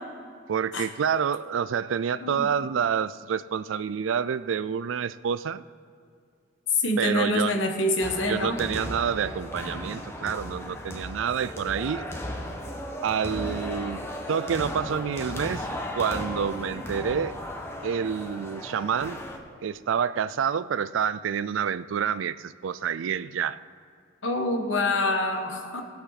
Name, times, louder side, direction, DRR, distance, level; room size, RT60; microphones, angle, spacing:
voice 1, 0.5-5.6 7.0-7.6 8.3-12.1 13.0-14.0 14.3-15.7 16.0-17.3 17.8-19.2 19.6-23.6, right 7 dB, 85° right, 16 dB, 0.4 m, -28 dB
voice 2, 6.7-8.6 24.2-25.8, left 2 dB, 80° left, 4 dB, 1.4 m, -26 dB
sound 1, 8.0-19.4, left 1 dB, 15° left, 1.1 m, -35 dB
18.0 x 8.0 x 4.1 m, 2.3 s
head